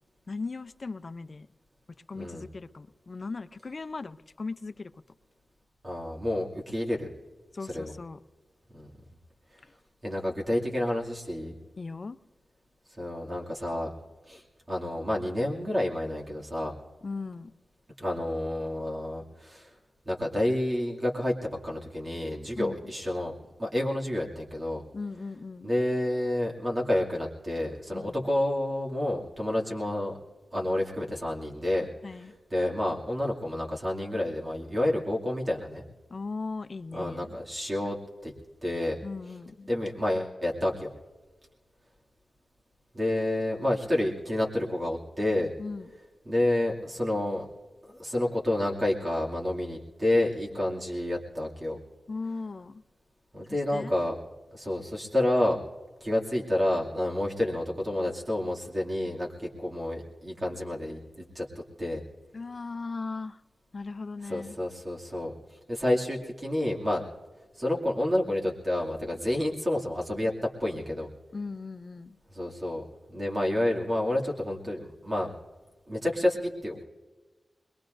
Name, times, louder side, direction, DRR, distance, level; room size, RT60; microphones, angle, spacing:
voice 1, 0.3-1.5 2.1-4.9 7.5-8.2 11.8-12.2 17.0-17.5 22.5-22.9 24.9-25.7 27.9-28.2 32.0-32.3 36.1-37.4 39.0-39.7 45.6-45.9 52.1-52.8 53.5-54.0 62.3-63.4 63.7-64.6 71.3-72.2, left 4 dB, 50° left, 12 dB, 0.5 m, -38 dB
voice 2, 2.2-2.5 5.8-7.1 7.7-7.9 8.7-8.9 10.0-11.6 13.0-13.9 14.3-16.7 18.0-19.8 20.1-23.3 23.6-24.8 25.6-30.1 30.5-31.9 32.5-35.8 36.9-38.0 38.2-38.3 38.6-39.0 39.7-40.9 42.9-45.5 46.3-47.5 47.9-51.8 53.3-54.2 54.5-55.6 56.0-61.0 61.3-61.5 61.8-62.0 64.2-67.0 67.6-71.1 72.3-72.8 73.1-75.3 75.9-76.8, left 1 dB, 35° right, -3 dB, 2.4 m, -29 dB
22.0 x 21.5 x 2.6 m, 1.3 s
wide cardioid pair, 80°, 0 cm